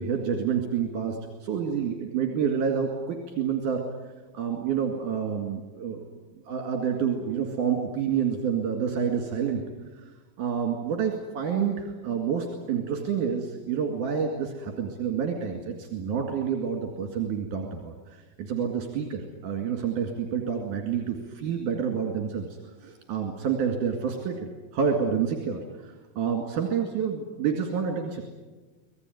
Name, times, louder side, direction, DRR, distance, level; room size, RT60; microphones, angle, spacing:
voice 1, 0.0-3.8 4.3-6.1 6.5-9.6 10.4-28.2, right 7 dB, 60° right, 3 dB, 3.7 m, -28 dB
25.5 x 18.5 x 9.5 m, 1.3 s
omnidirectional pair, 4.2 m